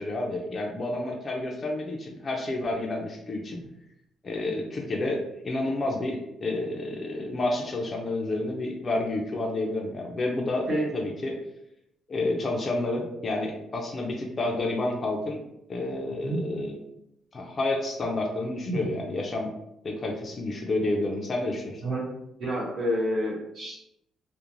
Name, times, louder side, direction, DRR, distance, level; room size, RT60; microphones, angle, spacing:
voice 1, 0.0-3.6 4.2-10.7 10.9-11.4 12.1-15.4 15.7-16.7 17.3-19.5 19.8-21.8, left 2 dB, 25° left, 0 dB, 0.3 m, -30 dB
voice 2, 22.4-23.8, equal, 45° right, -7 dB, 0.9 m, -28 dB
2.5 x 2.0 x 3.0 m, 0.82 s
cardioid pair, 180°, 0 cm